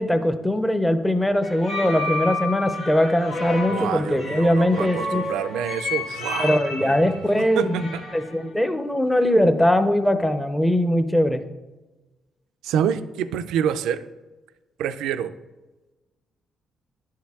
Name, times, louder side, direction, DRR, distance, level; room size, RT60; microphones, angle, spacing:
voice 1, 0.0-5.2 6.4-11.4, left 1 dB, 10° left, 9 dB, 0.6 m, -21 dB
sound 1, 1.4-8.4, left 3 dB, 80° left, 1.6 m, -31 dB
voice 2, 3.7-8.0 12.6-14.0 14.8-15.3, right 8 dB, 90° right, 12 dB, 0.4 m, -27 dB
10.5 x 4.6 x 3.5 m, 1.1 s
cardioid pair, 90°, 0 cm